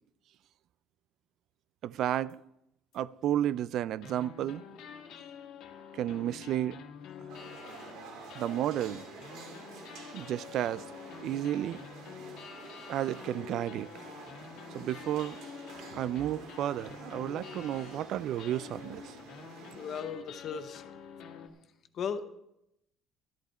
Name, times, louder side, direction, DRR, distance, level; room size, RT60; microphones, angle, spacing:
voice 1, 1.8-2.4 2.9-4.6 5.9-6.8 7.2-7.3 8.3-9.0 10.1-10.8 11.2-11.9 12.9-13.9 14.7-15.4 15.8-19.2, right 12 dB, 55° right, 0.4 m, -32 dB
sound 1, 2.3-2.4 2.9-3.0 4.0-21.5, left 7 dB, 65° left, 1.6 m, -48 dB
sound 2, 7.3-20.0, right 4 dB, 70° right, 2.4 m, -49 dB
voice 2, 19.7-20.9 21.9-22.2, left 6 dB, 40° left, 0.9 m, -36 dB
13.0 x 11.0 x 4.3 m
cardioid pair, 150°, 0 cm